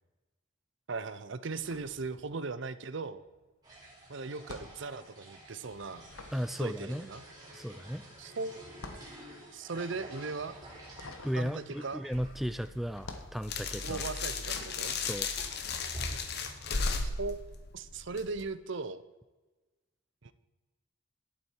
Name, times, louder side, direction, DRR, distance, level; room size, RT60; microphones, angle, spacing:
voice 1, 0.9-3.2 4.1-6.1 6.6-7.2 8.2-8.7 9.5-10.6 11.3-12.0 13.8-15.0 17.0-19.0 20.2-20.3, right 3 dB, 55° right, 14 dB, 0.6 m, -38 dB
sound 1, 1.4-2.7 2.9-16.1 16.7-17.2, left 2 dB, 75° left, 1.2 m, -50 dB
sound 2, 3.6-12.6 12.9-13.0 13.2-13.3 14.3-14.5 14.9-17.0, right 1 dB, 20° right, 3.9 m, -49 dB
voice 2, 6.3-7.1 7.5-8.1 11.2-14.0 15.0-15.3, equal, ahead, 11 dB, 0.3 m, -35 dB
sound 3, 12.1-18.4, left 4 dB, 50° left, 1.0 m, -36 dB
11.5 x 8.6 x 4.6 m, 1.2 s
head